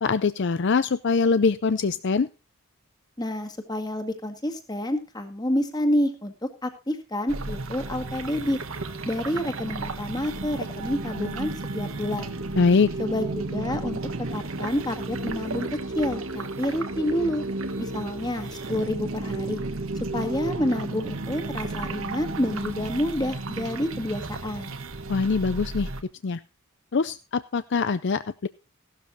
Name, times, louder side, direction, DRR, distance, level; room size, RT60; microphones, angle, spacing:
voice 1, 0.0-2.3 12.6-12.9 25.1-25.9 26.2-26.4 26.9-28.5, left 4 dB, 55° left, 14 dB, 0.5 m, -23 dB
voice 2, 3.2-8.6 9.1-12.4 13.0-14.0 14.3-15.7 15.9-17.4 17.8-19.6 20.1-24.8, left 1 dB, 20° left, 6 dB, 1.8 m, -28 dB
sound 1, 7.3-26.0, right 2 dB, 70° right, 1.4 m, -33 dB
16.0 x 12.5 x 2.7 m, 0.32 s
head